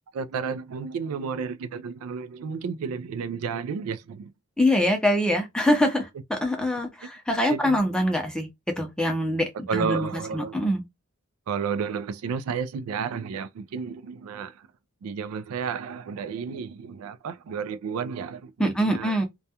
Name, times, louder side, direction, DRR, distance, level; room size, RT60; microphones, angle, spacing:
voice 1, 0.1-4.3 7.5-7.8 9.7-10.7 11.5-14.7 15.0-19.2, right 6 dB, 75° right, 0.3 m, -32 dB
voice 2, 4.6-8.5 8.8-10.8 18.6-19.3, equal, 5° left, 0.5 m, -24 dB
2.3 x 2.2 x 2.7 m
head